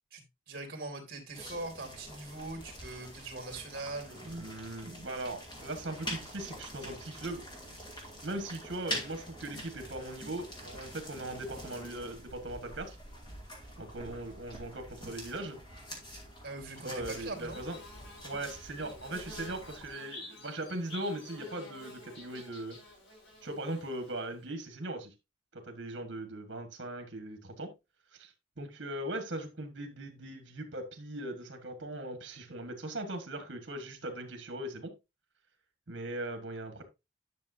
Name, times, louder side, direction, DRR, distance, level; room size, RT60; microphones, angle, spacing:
voice 1, 0.1-4.5 16.4-17.6, right 2 dB, 55° right, 3 dB, 2.7 m, -41 dB
sound 1, 1.3-19.9, equal, 25° left, 2.5 m, -45 dB
voice 2, 4.2-7.4 8.2-13.0 13.8-15.6 16.8-17.8 18.2-22.8 23.4-25.1 25.5-27.7 28.1-34.9 35.9-36.8, right 1 dB, 70° right, 5 dB, 1.6 m, -39 dB
Bird / Buzz, 16.7-24.4, left 2 dB, 80° left, 5.4 m, -50 dB
10.5 x 6.3 x 2.7 m, 0.24 s
head